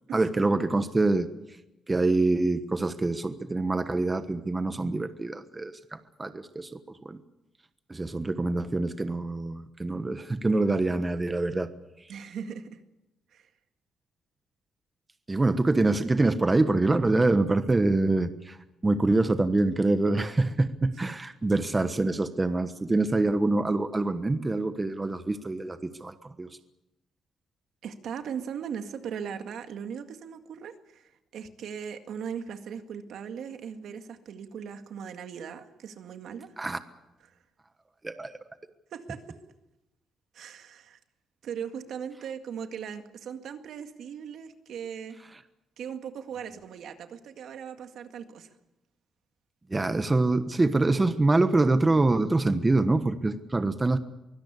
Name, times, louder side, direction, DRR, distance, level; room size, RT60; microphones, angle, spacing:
voice 1, 0.1-1.3 1.9-7.2 7.9-11.7 12.0-12.1 15.3-18.6 18.8-26.5 36.6-36.8 38.0-38.4 49.7-54.0, right 2 dB, 20° right, 10 dB, 1.2 m, -25 dB
voice 2, 12.1-12.8 13.3-13.5 27.8-36.6 37.2-37.4 38.9-39.4 40.3-41.0 41.4-45.2 45.8-48.5, right 7 dB, 70° right, 7 dB, 1.9 m, -39 dB
23.5 x 16.5 x 8.3 m, 0.97 s
cardioid pair, 90°, 0 cm